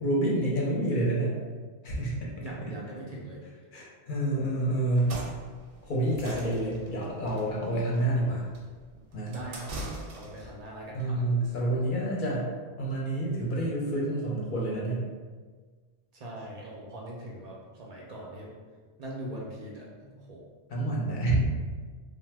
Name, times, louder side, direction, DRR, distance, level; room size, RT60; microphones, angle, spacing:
voice 1, 0.0-1.3 1.8-2.3 3.7-5.1 5.8-8.5 9.1-9.4 10.9-12.5 12.8-15.1 20.7-21.4, right 1 dB, 55° left, -4 dB, 0.7 m, -28 dB
voice 2, 2.4-3.4 9.3-11.2 16.1-18.5 19.0-20.4, right 1 dB, 55° right, -3 dB, 0.4 m, -41 dB
sound 1, 4.9-10.5, right 1 dB, 85° right, 0.9 m, -41 dB
2.7 x 2.1 x 3.3 m, 1.5 s
omnidirectional pair, 1.2 m